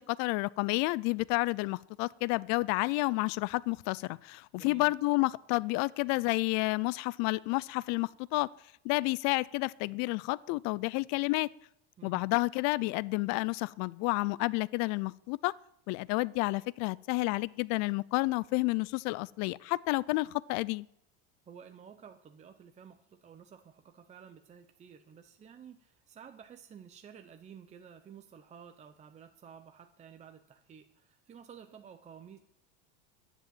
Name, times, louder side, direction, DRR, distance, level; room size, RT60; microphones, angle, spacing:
voice 1, 0.0-8.5 8.8-11.5 12.0-15.5 15.9-20.9, left 23 dB, 55° left, 0.5 m, -30 dB
voice 2, 4.5-4.9 12.0-12.2 21.5-32.4, right 7 dB, 20° right, 0.7 m, -52 dB
10.5 x 10.0 x 7.8 m
supercardioid pair, 135°, 33 cm